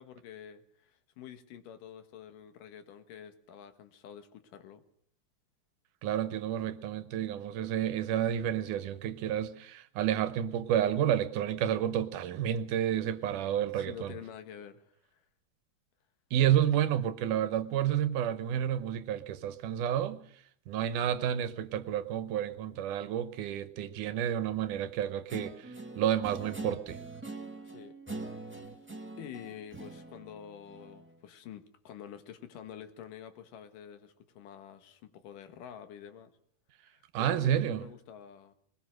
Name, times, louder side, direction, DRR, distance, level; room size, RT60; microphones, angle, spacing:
voice 1, 0.0-4.8 13.7-15.3 27.6-28.0 28.6-28.8 29.2-36.3 36.8-38.6, left 9 dB, 85° left, 3.0 m, -48 dB
voice 2, 6.0-14.1 16.3-20.2 20.7-27.0 37.1-37.9, right 10 dB, 80° right, 2.5 m, -30 dB
Guitar, 25.3-31.1, right 3 dB, 5° right, 0.9 m, -43 dB
21.0 x 20.5 x 6.4 m
omnidirectional pair, 3.7 m